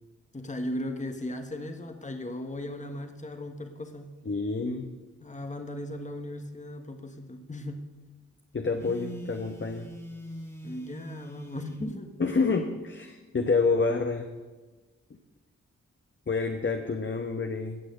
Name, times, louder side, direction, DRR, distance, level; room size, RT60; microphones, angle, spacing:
voice 1, 0.3-4.1 5.2-7.8 10.6-12.1, left 1 dB, 25° left, 6 dB, 1.4 m, -37 dB
voice 2, 4.2-4.9 8.5-9.9 12.2-14.3 16.3-17.8, left 4 dB, 40° left, 4 dB, 1.2 m, -28 dB
Telephone, 8.8-11.9, right 1 dB, 10° left, 2.3 m, -42 dB
17.0 x 6.4 x 7.8 m, 1.2 s
cardioid pair, 50°, 30 cm